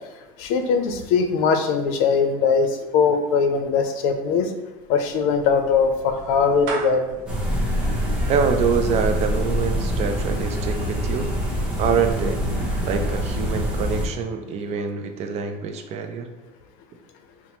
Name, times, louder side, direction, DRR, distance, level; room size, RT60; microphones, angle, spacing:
voice 1, 0.4-4.5 4.9-7.2, left 5 dB, 85° left, 6 dB, 0.5 m, -21 dB
Clapping / Meow, 4.8-11.2, right 3 dB, 65° right, 0.8 m, -39 dB
sound 1, 7.3-14.1, equal, 5° right, 0.8 m, -25 dB
voice 2, 8.3-11.3 11.8-12.4 12.8-16.3, right 6 dB, 40° right, 5 dB, 0.4 m, -25 dB
5.5 x 2.1 x 3.0 m, 1.1 s
cardioid pair, 140°, 17 cm